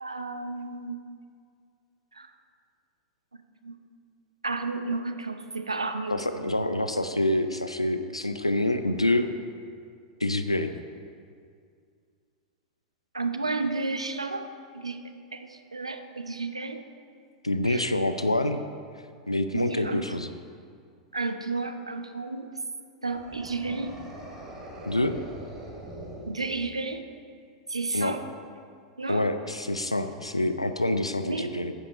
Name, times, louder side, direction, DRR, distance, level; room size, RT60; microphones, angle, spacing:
voice 1, 0.0-1.0 2.1-2.3 3.6-3.8 4.4-6.2 13.1-14.5 14.7-15.0 15.3-16.8 17.6-17.9 19.5-20.0 21.1-22.5 23.0-24.0 26.3-27.1 27.7-28.2 29.0-29.3 31.2-31.6, right 3 dB, 80° right, 8 dB, 0.7 m, -32 dB
voice 2, 6.1-9.3 10.2-10.7 17.4-18.6 19.3-20.3 24.8-25.2 27.9-28.2 29.1-31.7, left 1 dB, 85° left, 9 dB, 0.5 m, -26 dB
sound 1, 23.1-26.9, right 1 dB, 20° right, 2.5 m, -42 dB
10.0 x 8.6 x 5.1 m, 2.2 s
figure-of-eight pair, 90°, 3 cm